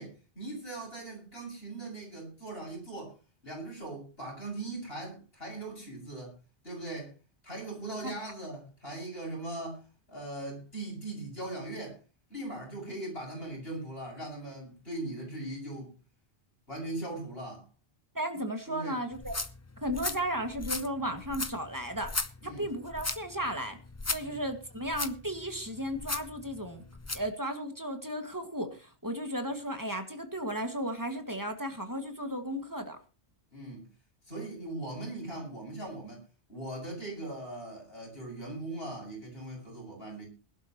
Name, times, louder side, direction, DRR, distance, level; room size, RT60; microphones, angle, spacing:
voice 1, 0.0-3.1 3.4-6.4 6.6-7.1 7.4-12.0 12.3-15.9 16.7-17.7 18.7-19.0 22.4-22.7 24.2-24.4 33.5-33.9 34.3-36.2 36.5-40.3, right 2 dB, 60° left, -1 dB, 7.0 m, -40 dB
voice 2, 18.1-19.4 19.8-22.1 22.4-23.8 24.1-26.8 27.1-33.0, equal, 15° right, 6 dB, 2.0 m, -34 dB
sound 1, 19.1-27.3, left 3 dB, 20° left, 0.5 m, -38 dB
21.0 x 12.0 x 3.1 m, 0.32 s
omnidirectional pair, 1.2 m